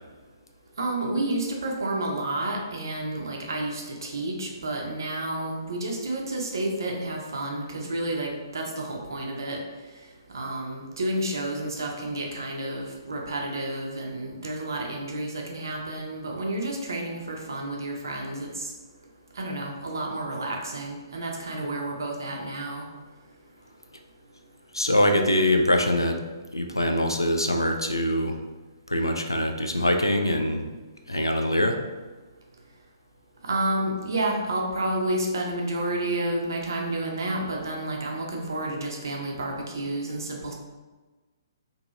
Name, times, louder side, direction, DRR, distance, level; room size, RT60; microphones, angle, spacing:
voice 1, 0.8-9.6 10.3-18.7 19.4-22.8 33.4-40.5, right 1 dB, 60° right, 0 dB, 0.5 m, -30 dB
voice 2, 24.7-26.2 26.5-28.4 28.9-30.7 31.1-31.8, left 1 dB, 85° left, 4 dB, 0.3 m, -23 dB
2.7 x 2.6 x 2.3 m, 1.3 s
figure-of-eight pair, 125°, 2 cm